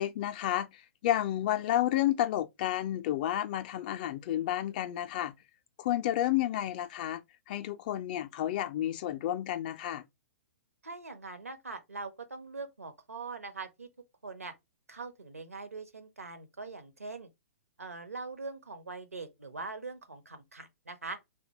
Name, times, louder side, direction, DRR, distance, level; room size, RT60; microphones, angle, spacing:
voice 1, 0.0-5.3 5.8-7.2 7.5-10.0, left 13 dB, 35° left, 0.4 m, -31 dB
voice 2, 10.8-13.9 14.2-14.5 14.9-17.3 17.8-21.2, right 3 dB, 75° right, 0.7 m, -42 dB
3.8 x 2.2 x 2.8 m
figure-of-eight pair, 115°, 8 cm